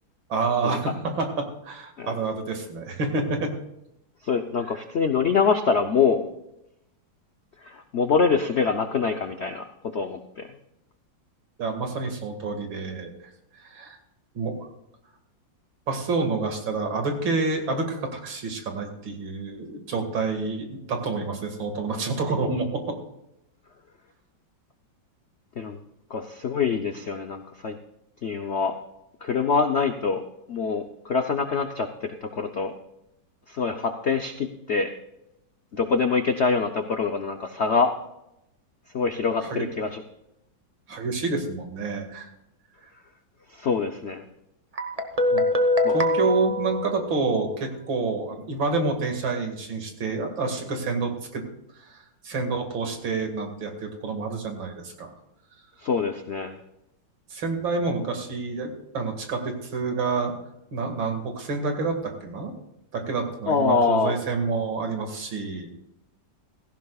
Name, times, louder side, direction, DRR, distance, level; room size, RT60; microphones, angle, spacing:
voice 1, 0.3-3.5 4.6-4.7 11.6-13.1 13.5-14.0 14.3-14.7 15.9-23.0 39.4-39.6 40.9-42.3 45.3-45.4 45.9-51.4 51.8-55.1 57.3-60.3 60.7-62.5 62.9-65.7, right 3 dB, 75° right, 4 dB, 2.7 m, -28 dB
voice 2, 4.2-6.2 7.6-9.6 9.9-10.5 25.6-25.8 26.1-27.8 28.2-28.8 29.2-30.2 30.5-32.7 33.5-34.9 35.7-37.9 38.9-40.0 43.5-44.2 45.8-46.0 55.8-56.6 63.5-64.1, left 5 dB, 65° left, 6 dB, 0.6 m, -25 dB
Guitar, 44.8-47.6, left 1 dB, 30° right, 0.6 m, -24 dB
16.5 x 15.0 x 2.3 m, 0.85 s
omnidirectional pair, 2.1 m